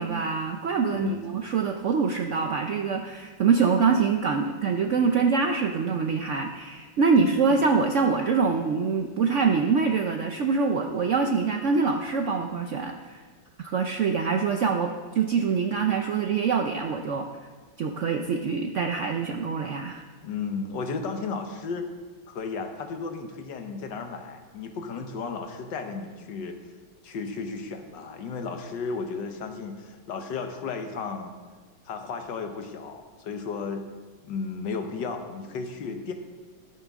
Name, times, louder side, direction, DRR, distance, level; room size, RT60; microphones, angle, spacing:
voice 1, 0.0-13.2 13.6-17.3 17.8-20.0, right 5 dB, 90° right, 4 dB, 0.6 m, -25 dB
voice 2, 0.9-1.2 7.2-7.7 20.2-21.9 22.3-26.6 27.0-31.3 31.8-33.8 34.2-36.1, left 4 dB, 70° left, 5 dB, 1.6 m, -34 dB
13.5 x 12.5 x 3.6 m, 1.4 s
omnidirectional pair, 2.1 m